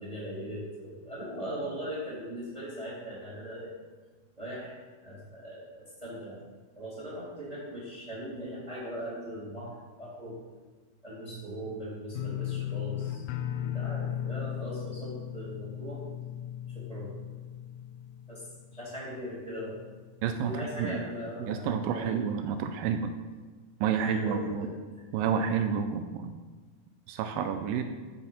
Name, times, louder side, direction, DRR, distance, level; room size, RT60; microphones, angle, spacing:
voice 1, 0.0-3.7 4.4-6.4 6.8-10.4 11.0-13.2 13.5-16.0 16.6-17.2 18.3-19.8 20.4-22.2 24.0-25.0, equal, 10° right, -7 dB, 3.6 m, -40 dB
sound 1, 12.1-19.0 19.3-19.9 20.2-20.3, left 10 dB, 75° left, 1.9 m, -36 dB
voice 2, 20.2-21.0 21.4-23.1 23.8-24.7 25.1-26.3 27.1-27.8, right 7 dB, 90° right, 7 dB, 2.4 m, -29 dB
10.0 x 7.0 x 5.9 m, 1.4 s
omnidirectional pair, 3.9 m